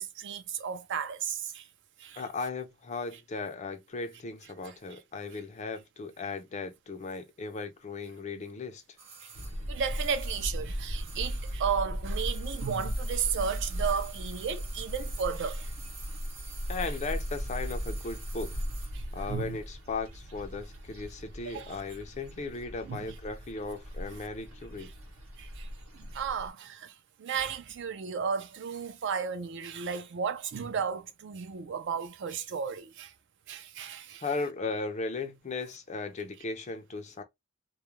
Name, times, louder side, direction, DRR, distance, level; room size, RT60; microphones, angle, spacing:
voice 1, 0.0-1.7 2.0-2.2 4.6-4.7 9.2-9.3 9.7-15.7 18.9-19.6 21.4-21.8 22.8-23.2 24.8-24.9 25.4-33.1 33.5-34.2, right 6 dB, 55° right, 0.4 m, -34 dB
voice 2, 2.2-8.8 16.7-18.6 19.1-24.9 34.2-37.2, left 3 dB, 30° left, 0.4 m, -37 dB
sound 1, 9.0-11.7 12.0-19.0 19.3-19.4, right 4 dB, 30° right, 0.8 m, -49 dB
sound 2, 9.3-26.5, equal, 70° right, 0.8 m, -37 dB
2.3 x 2.0 x 2.9 m
head